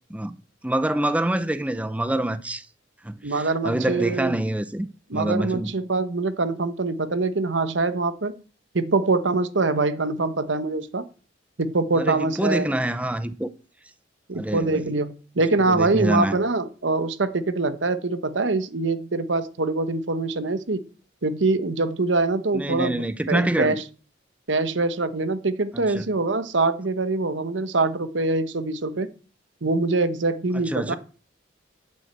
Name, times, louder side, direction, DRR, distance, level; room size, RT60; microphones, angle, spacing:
voice 1, 0.6-2.7 3.0-5.7 11.9-13.5 14.3-14.8 15.7-16.4 22.5-23.8 25.7-26.1 30.5-31.0, right 1 dB, 5° right, 0.5 m, -26 dB
voice 2, 3.2-4.4 5.1-8.3 8.7-11.0 11.6-12.7 14.3-20.8 21.2-23.8 24.5-29.1 29.6-31.0, right 3 dB, 75° right, 1.0 m, -24 dB
9.1 x 7.6 x 8.0 m
head